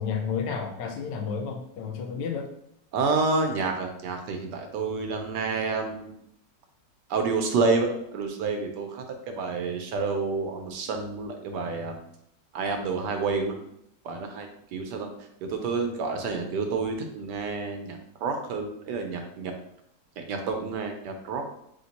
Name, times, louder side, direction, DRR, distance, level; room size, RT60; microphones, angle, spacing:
voice 1, 0.0-2.5, left 6 dB, 80° left, 4 dB, 1.2 m, -31 dB
voice 2, 2.9-6.1 7.1-12.0 12.5-13.6 14.0-15.1 15.4-19.5 20.2-21.5, right 4 dB, 75° right, 4 dB, 1.2 m, -29 dB
3.7 x 2.9 x 4.0 m, 0.75 s
omnidirectional pair, 2.0 m